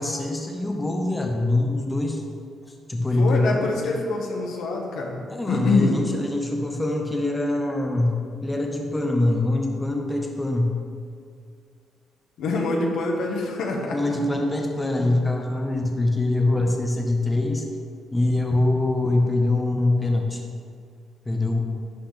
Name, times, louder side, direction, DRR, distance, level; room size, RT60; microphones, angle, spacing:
voice 1, 0.0-2.2 2.9-4.0 5.3-8.1 8.4-10.7 13.9-17.6 18.1-20.4 21.2-21.6, left 2 dB, 15° left, 1 dB, 1.3 m, -23 dB
voice 2, 3.2-6.0 12.4-14.2, left 3 dB, 80° left, 0 dB, 1.5 m, -25 dB
12.0 x 8.1 x 3.5 m, 2.2 s
cardioid pair, 90°, 0 cm